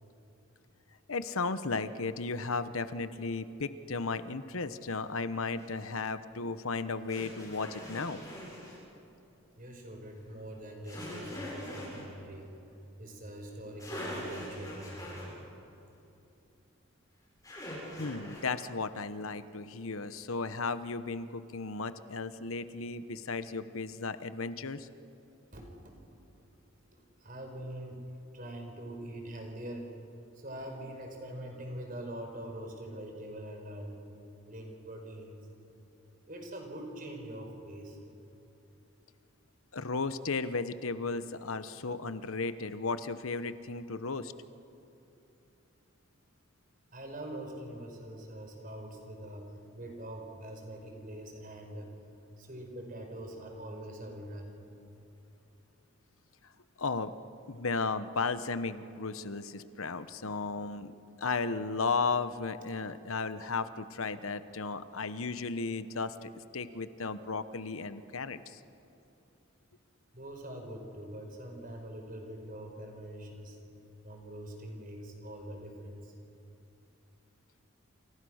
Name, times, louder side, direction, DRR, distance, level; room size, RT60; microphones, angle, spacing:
voice 1, 1.1-8.2 18.0-24.9 39.7-44.3 56.8-57.1 57.5-60.9 61.2-68.6, left 4 dB, 80° left, 12 dB, 1.0 m, -35 dB
sound 1, 5.6-5.7 7.1-8.8 10.8-12.0 13.5-13.6 13.8-15.3 17.4-18.6, equal, 15° left, 7.8 m, -42 dB
voice 2, 9.6-12.5 13.0-15.2 25.5-26.2 26.9-28.0 28.3-29.9 30.3-34.0 34.5-35.4 36.3-38.0 46.9-51.9 52.4-54.5 70.1-73.6 74.0-76.1, right 1 dB, 40° right, 2 dB, 5.1 m, -43 dB
29.0 x 28.0 x 6.5 m, 2.9 s
head